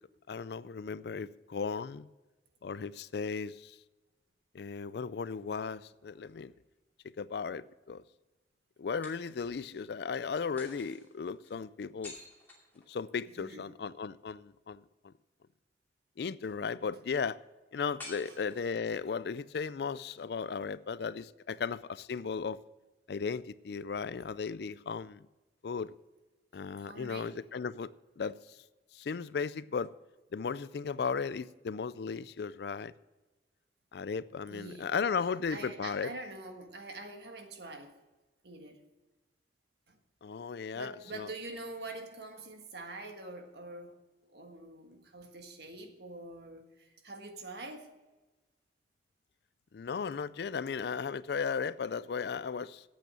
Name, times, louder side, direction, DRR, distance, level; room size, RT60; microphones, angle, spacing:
voice 1, 0.3-2.1 2.6-3.8 4.5-6.5 7.2-8.0 8.8-12.2 12.9-15.1 16.2-17.4 17.7-22.6 23.1-25.2 25.6-25.9 26.5-27.9 28.2-28.4 28.9-29.9 30.3-32.9 33.9-36.1 40.2-41.3 49.7-52.8, left 5 dB, 60° left, 0.4 m, -36 dB
sound 1, 5.9-7.0 9.0-9.8 10.6-13.4 18.0-19.1, left 2 dB, 10° left, 2.6 m, -52 dB
voice 2, 13.4-13.7 18.2-18.4 26.8-27.4 34.5-34.9 35.5-38.0 38.4-38.8 39.9-40.0 40.7-44.0 44.3-47.9, right 2 dB, 60° right, 1.6 m, -45 dB
8.8 x 8.0 x 8.9 m
head